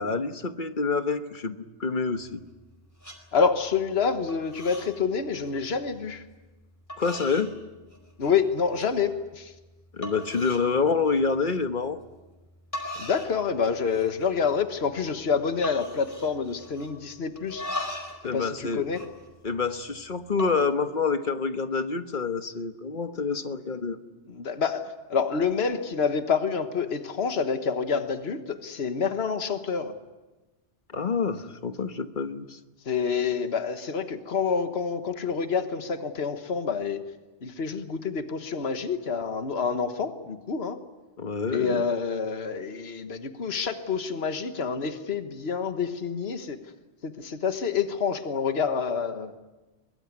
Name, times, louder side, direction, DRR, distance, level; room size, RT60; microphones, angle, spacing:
voice 1, 0.0-2.4 7.0-7.5 9.9-12.0 18.2-18.8 19.4-24.0 30.9-32.6 41.2-41.8, left 4 dB, 45° left, 9 dB, 1.4 m, -27 dB
sound 1, 2.1-2.7 3.0-3.2 3.6-4.0 4.3-4.9 5.2-5.6 6.3-6.4 6.9-7.5 7.9-8.4 8.8-8.9 9.4-9.5 10.0-10.7 11.1-11.3 12.4-12.5 12.7-13.4 13.7-14.2 14.5-14.6 14.9-15.2 15.6-17.0 17.4-18.2 18.5-19.8 20.3-20.6, left 1 dB, 15° left, 4.6 m, -38 dB
voice 2, 3.3-6.2 8.2-9.5 12.9-17.6 18.3-19.0 24.3-29.9 32.8-37.0 37.4-40.8 41.5-46.6 47.0-49.3, left 6 dB, 60° left, 8 dB, 1.6 m, -27 dB
23.0 x 22.0 x 9.6 m, 1.1 s
omnidirectional pair, 1.2 m